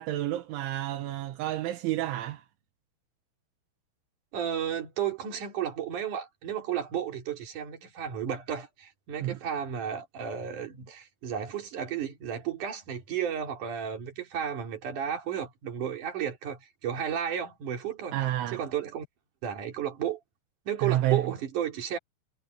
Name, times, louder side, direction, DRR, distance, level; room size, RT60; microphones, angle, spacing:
voice 1, 0.0-2.4 9.2-9.4 18.1-18.6 20.8-21.3, right 13 dB, 85° right, 3.8 m, -29 dB
voice 2, 4.3-18.2 18.5-19.1 19.4-20.2 20.7-22.0, right 9 dB, 45° right, 4.3 m, -33 dB
omnidirectional pair, 5.4 m